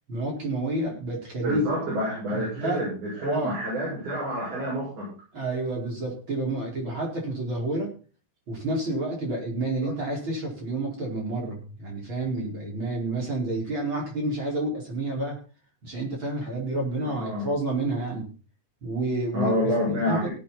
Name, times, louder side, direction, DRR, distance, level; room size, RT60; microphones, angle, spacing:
voice 1, 0.1-1.6 2.3-2.9 3.2-3.6 5.3-7.9 8.5-15.4 15.8-18.3 18.8-20.3, right 2 dB, 35° right, -2 dB, 5.4 m, -29 dB
voice 2, 1.4-5.1 9.8-10.0 17.0-17.5 19.3-20.3, equal, 65° right, -6 dB, 8.7 m, -28 dB
18.5 x 8.5 x 4.2 m, 0.36 s
omnidirectional pair, 3.7 m